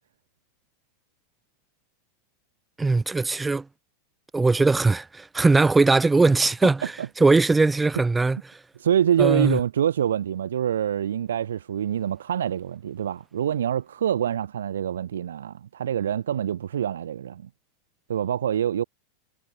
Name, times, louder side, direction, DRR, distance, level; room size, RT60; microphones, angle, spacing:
voice 1, 2.8-3.7 4.3-8.6 9.2-9.6, right 3 dB, 10° right, 0.6 m, -20 dB
voice 2, 8.8-17.4 18.1-18.8, right 9 dB, 65° right, 1.3 m, -25 dB
figure-of-eight pair, 90°, 0 cm